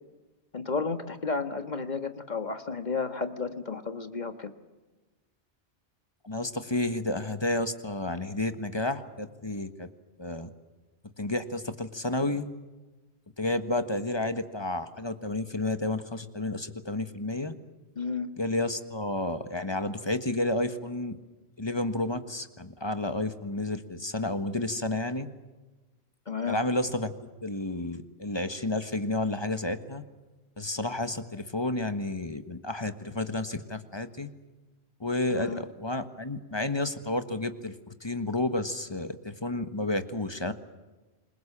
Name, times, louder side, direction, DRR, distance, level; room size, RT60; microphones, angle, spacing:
voice 1, 0.5-4.5 17.9-18.3 26.3-26.6 35.3-35.6, left 4 dB, 40° left, 8 dB, 1.7 m, -32 dB
voice 2, 6.2-9.9 10.2-10.5 11.2-12.5 13.4-17.5 18.4-21.2 21.6-25.3 26.5-30.0 30.6-34.3 35.0-40.5, left 2 dB, 25° left, 9 dB, 1.4 m, -31 dB
27.5 x 22.0 x 7.4 m, 1.2 s
omnidirectional pair, 1.1 m